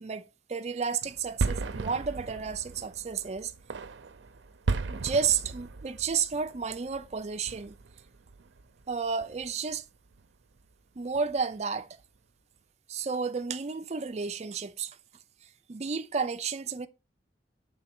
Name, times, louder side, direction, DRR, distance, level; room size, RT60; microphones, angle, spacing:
voice 1, 0.0-3.5 4.9-7.7 8.9-9.8 11.0-11.9 12.9-15.0 15.7-16.9, right 5 dB, 35° right, 0.4 m, -31 dB
sound 1, 1.0-8.9 9.2-9.7 10.1-10.3 10.6-10.7 11.1-11.6, right 3 dB, 90° right, 0.6 m, -36 dB
6.0 x 3.9 x 4.3 m
head